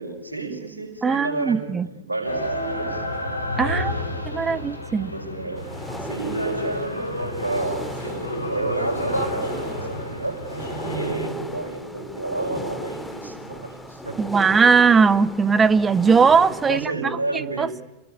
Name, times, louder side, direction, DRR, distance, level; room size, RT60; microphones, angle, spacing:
voice 1, 0.0-3.0 3.6-4.7 4.9-5.7 6.0-14.4 16.7-17.7, right 2 dB, 80° right, 5.4 m, -31 dB
voice 2, 1.0-1.9 3.6-3.9 4.3-5.1 14.2-16.9 17.6-17.8, right 5 dB, 15° right, 1.1 m, -18 dB
sound 1, 2.2-11.3, left 1 dB, 85° left, 4.0 m, -30 dB
sound 2, 5.6-16.9, left 1 dB, 5° left, 3.0 m, -36 dB
27.5 x 21.5 x 9.6 m
figure-of-eight pair, 90°, 0 cm